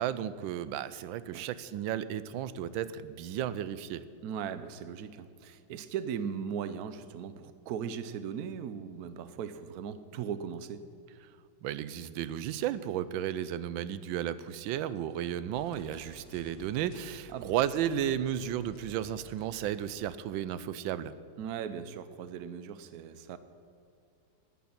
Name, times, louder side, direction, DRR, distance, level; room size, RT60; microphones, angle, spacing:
voice 1, 0.0-4.0 11.6-21.1, right 10 dB, 80° right, 15 dB, 1.3 m, -33 dB
voice 2, 4.2-10.8 17.3-17.5 21.4-23.4, right 7 dB, 65° right, 13 dB, 1.0 m, -38 dB
sound 1, 15.5-20.2, right 1 dB, 50° left, 2.3 m, -54 dB
10.0 x 9.5 x 8.7 m, 2.5 s
omnidirectional pair, 2.1 m